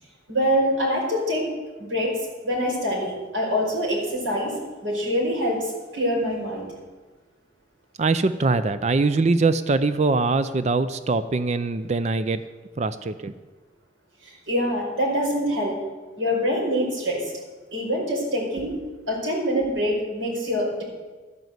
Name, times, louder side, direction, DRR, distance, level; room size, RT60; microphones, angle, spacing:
voice 1, 0.3-1.5 1.8-4.6 4.8-6.7 14.2-15.8 16.2-17.3 17.7-18.8 19.1-20.8, equal, 80° right, -2 dB, 5.0 m, -25 dB
voice 2, 8.0-12.4 12.8-13.3, right 3 dB, 35° right, 12 dB, 0.4 m, -22 dB
12.0 x 9.3 x 8.0 m, 1.3 s
head